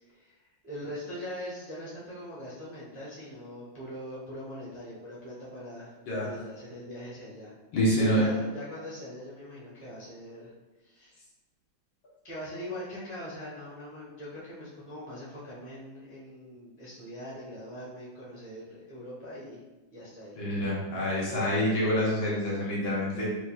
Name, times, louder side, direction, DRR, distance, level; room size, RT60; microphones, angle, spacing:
voice 1, 0.1-7.6 8.0-10.5 10.8-11.1 12.2-19.6 19.9-20.4, left 1 dB, 15° right, -8 dB, 0.5 m, -42 dB
voice 2, 7.7-8.3 20.4-23.3, equal, 80° left, -6 dB, 2.0 m, -27 dB
5.0 x 3.0 x 2.3 m, 1.1 s
omnidirectional pair, 2.2 m